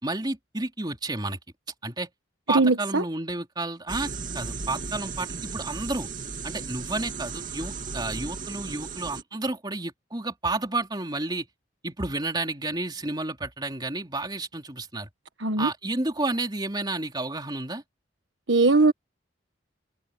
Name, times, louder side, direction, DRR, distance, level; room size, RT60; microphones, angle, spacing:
voice 1, 0.0-1.4 1.8-2.1 2.5-6.1 6.4-11.5 11.8-15.1 15.6-17.8, right 2 dB, 20° right, 3.3 m, -31 dB
voice 2, 2.5-3.0 15.4-15.7 18.5-18.9, right 3 dB, 75° right, 1.4 m, -20 dB
sound 1, 3.9-9.2, right 4 dB, 45° right, 2.8 m, -35 dB
head